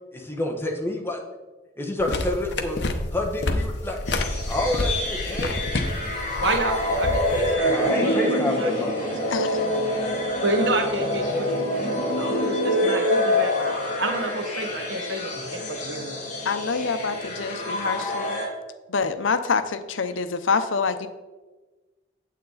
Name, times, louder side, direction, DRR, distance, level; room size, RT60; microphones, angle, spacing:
voice 1, 0.1-1.2 1.8-2.8 3.1-4.0 4.5-5.6 7.7-9.9, left 1 dB, 10° left, 0 dB, 1.1 m, -28 dB
sound 1, 2.0-7.5, left 2 dB, 65° left, 0.9 m, -29 dB
sound 2, 4.1-18.5, left 1 dB, 40° left, 1.8 m, -26 dB
voice 2, 6.4-9.2 10.4-16.2, right 2 dB, 70° right, 4 dB, 1.3 m, -29 dB
voice 3, 16.4-18.4 18.9-21.1, left 5 dB, 90° left, 11 dB, 0.7 m, -26 dB
9.2 x 7.7 x 4.0 m, 1.3 s
head